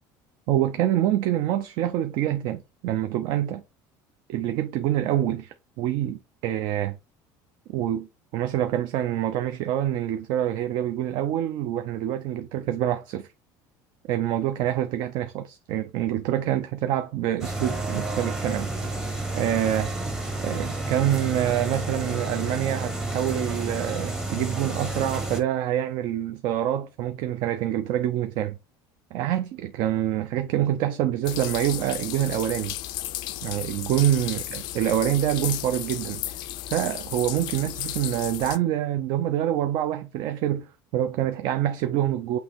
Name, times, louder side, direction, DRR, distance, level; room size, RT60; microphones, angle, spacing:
voice 1, 0.5-3.6 4.3-7.0 7.7-8.1 8.3-13.3 14.1-18.7 19.3-19.9 20.4-28.6 29.1-32.7 33.4-36.2 36.7-40.7 40.9-42.4, right 12 dB, 60° right, 0.4 m, -26 dB
sound 1, 17.4-25.4, right 2 dB, 5° right, 0.7 m, -30 dB
sound 2, 31.2-38.6, left 14 dB, 55° left, 0.4 m, -34 dB
6.2 x 2.8 x 2.9 m
cardioid pair, 155°, 9 cm